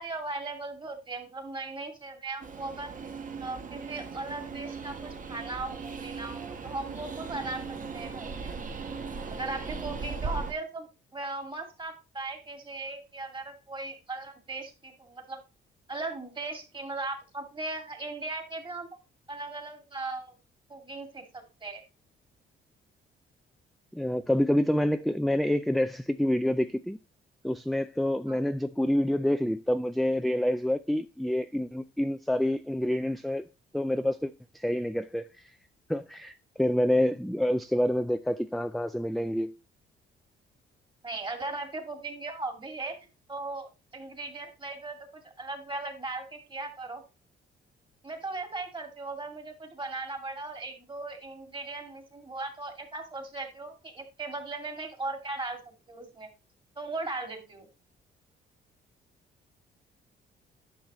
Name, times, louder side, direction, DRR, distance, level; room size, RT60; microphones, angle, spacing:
voice 1, 0.0-2.9 3.4-8.5 9.3-10.9 11.1-15.4 15.9-18.9 19.3-20.4 20.7-21.8 28.3-28.4 41.0-43.0 43.3-47.0 48.0-56.3 56.8-57.7, right 3 dB, 25° right, 2.3 m, -38 dB
Train, 2.4-10.5, right 4 dB, 40° right, 1.2 m, -38 dB
voice 2, 23.9-27.0 27.4-33.4 33.7-35.4 35.9-39.5, left 1 dB, ahead, 0.3 m, -27 dB
10.5 x 5.9 x 3.0 m
cardioid pair, 90°, 20 cm